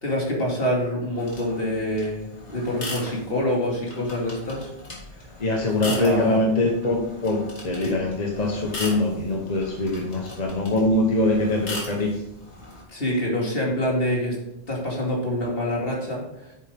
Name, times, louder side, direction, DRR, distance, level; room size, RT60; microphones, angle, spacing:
voice 1, 0.0-4.7 5.1-5.4 5.9-6.4 7.8-8.0 12.9-14.4 14.7-16.5, left 1 dB, 60° left, -3 dB, 2.8 m, -26 dB
sound 1, 1.2-12.8, left 2 dB, 90° left, 2.5 m, -39 dB
voice 2, 5.4-12.1, left 2 dB, 40° left, 0 dB, 1.3 m, -23 dB
9.1 x 7.2 x 3.6 m, 0.89 s
omnidirectional pair, 1.1 m